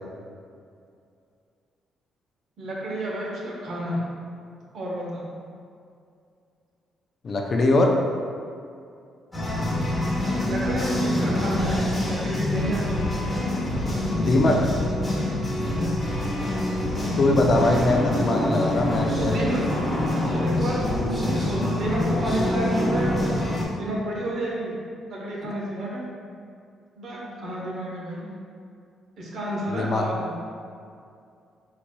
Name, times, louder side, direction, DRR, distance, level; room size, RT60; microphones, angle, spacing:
voice 1, 2.6-4.0 4.7-5.2 10.4-13.1 15.7-16.0 18.5-18.7 19.1-24.7 25.1-26.0 27.0-28.3 29.2-30.3, right 1 dB, 65° right, -3 dB, 1.0 m, -30 dB
voice 2, 7.2-7.9 14.2-14.6 17.2-19.4 25.4-25.5 29.7-30.1, left 2 dB, 45° left, 1 dB, 0.5 m, -21 dB
sound 1, 9.3-23.6, left 1 dB, 5° left, 1.4 m, -25 dB
4.6 x 4.0 x 2.2 m, 2.4 s
cardioid pair, 90°, 0 cm